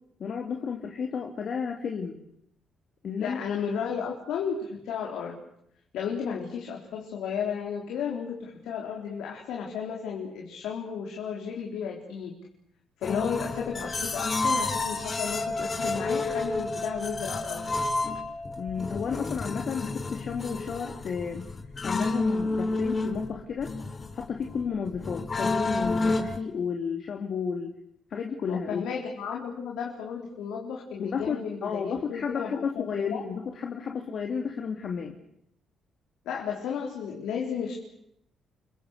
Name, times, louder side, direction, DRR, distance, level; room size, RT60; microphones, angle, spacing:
voice 1, 0.2-2.2 3.0-3.4 13.1-13.4 18.6-21.5 21.8-23.7 24.1-27.8 28.1-28.9 31.0-35.1, left 6 dB, 55° left, 2 dB, 2.9 m, -32 dB
voice 2, 3.2-5.3 5.9-12.3 13.0-17.7 28.5-33.2 36.3-37.8, left 7 dB, 85° left, -1 dB, 4.5 m, -33 dB
sound 1, 13.0-26.4, left 3 dB, 35° left, 3.8 m, -30 dB
29.0 x 23.0 x 6.7 m, 0.76 s
cardioid pair, 90°, 0 cm